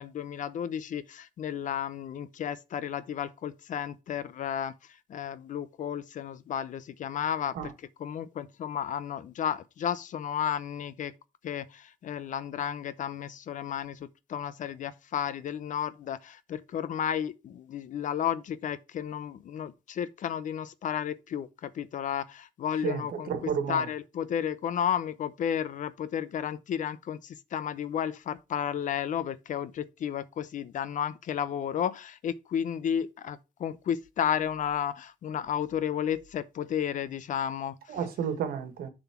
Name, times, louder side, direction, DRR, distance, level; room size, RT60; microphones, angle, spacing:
voice 1, 0.0-4.7 5.1-7.7 8.0-11.1 11.4-14.0 14.3-37.7, left 9 dB, 50° left, 0.6 m, -32 dB
voice 2, 22.8-23.8 37.9-38.9, right 7 dB, 65° right, 1.6 m, -31 dB
7.0 x 3.9 x 5.8 m
cardioid pair, 110°, 17 cm